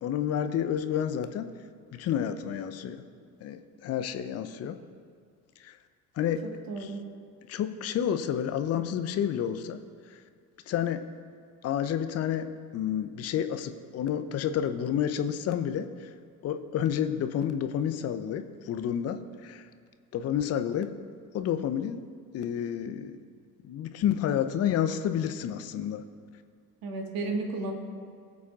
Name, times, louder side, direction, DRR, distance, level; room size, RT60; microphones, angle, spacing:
voice 1, 0.0-1.5 1.9-3.0 3.4-4.8 5.6-5.8 6.2-6.4 6.8-6.9 7.5-9.8 10.1-10.2 10.7-11.0 11.6-16.1 16.4-19.7 20.1-20.9 21.3-22.0 22.3-23.2 23.6-26.0, left 9 dB, 30° left, 9 dB, 0.7 m, -30 dB
voice 2, 6.4-7.1 26.8-27.7, right 3 dB, 45° right, 3 dB, 1.7 m, -33 dB
18.5 x 8.3 x 2.5 m, 2.1 s
figure-of-eight pair, 60°, 47 cm